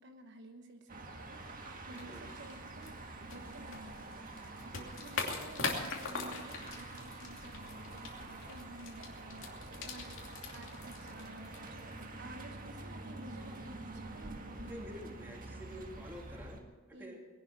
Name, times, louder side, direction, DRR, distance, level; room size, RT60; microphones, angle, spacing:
voice 1, 0.0-14.9 16.9-17.2, right 2 dB, 60° right, 4 dB, 1.1 m, -53 dB
sound 1, 0.9-16.6, right 2 dB, 40° right, 1.8 m, -47 dB
sound 2, 1.9-12.1, left 4 dB, 65° left, 2.7 m, -43 dB
voice 2, 14.7-17.2, equal, 10° right, -1 dB, 3.0 m, -48 dB
20.5 x 11.5 x 6.1 m, 1.4 s
head